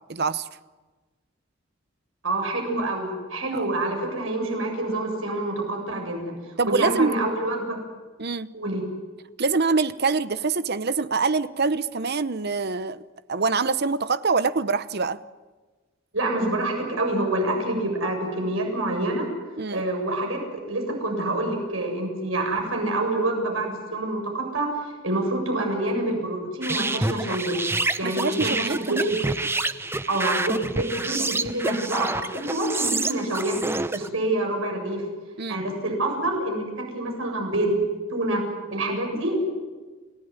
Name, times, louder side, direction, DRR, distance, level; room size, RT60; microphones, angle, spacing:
voice 1, 0.1-0.5 3.5-3.7 6.6-7.1 8.2-8.5 9.4-13.0 13.3-15.2 19.6-19.8 28.0-29.1 35.4-35.6 39.1-39.2, right 4 dB, 50° right, 14 dB, 0.9 m, -25 dB
voice 2, 2.2-6.3 6.6-7.8 8.5-8.8 16.1-19.3 19.7-20.4 20.7-24.7 25.0-27.6 28.0-29.2 30.1-33.5 33.9-35.0 35.5-36.6 36.9-37.8 38.1-38.4 38.7-39.4, right 1 dB, 85° right, 2 dB, 7.5 m, -27 dB
sound 1, 26.6-34.1, right 2 dB, 10° right, 0.8 m, -28 dB
30.0 x 18.0 x 9.7 m, 1.3 s
head